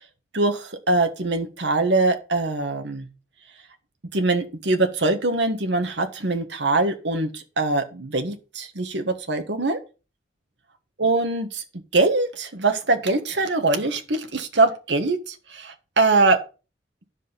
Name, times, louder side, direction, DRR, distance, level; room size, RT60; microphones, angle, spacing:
voice 1, 0.3-3.1 4.1-9.8 11.0-11.6 11.9-16.4, right 2 dB, 80° right, 6 dB, 1.5 m, -23 dB
10.5 x 5.5 x 5.7 m, 0.33 s
head